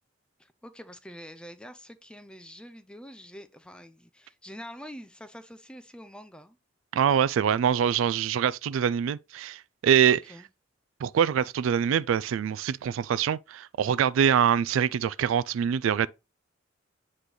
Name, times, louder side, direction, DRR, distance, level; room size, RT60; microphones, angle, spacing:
voice 1, 0.4-6.6 10.0-10.5, equal, 5° left, 0.5 m, -46 dB
voice 2, 6.9-10.2 11.0-16.1, right 8 dB, 85° right, 0.3 m, -24 dB
8.1 x 3.3 x 3.8 m
head